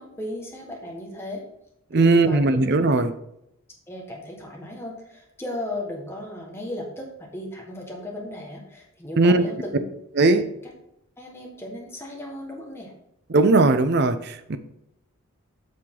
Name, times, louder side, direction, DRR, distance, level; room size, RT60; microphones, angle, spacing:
voice 1, 0.0-1.4 1.9-2.6 3.9-9.8 10.6-10.7 11.2-12.9, left 1 dB, 10° left, 1.5 m, -35 dB
voice 2, 1.9-3.1 9.2-9.4 10.2-10.5 13.3-14.6, right 3 dB, 50° right, 0.6 m, -18 dB
7.5 x 6.6 x 3.8 m
head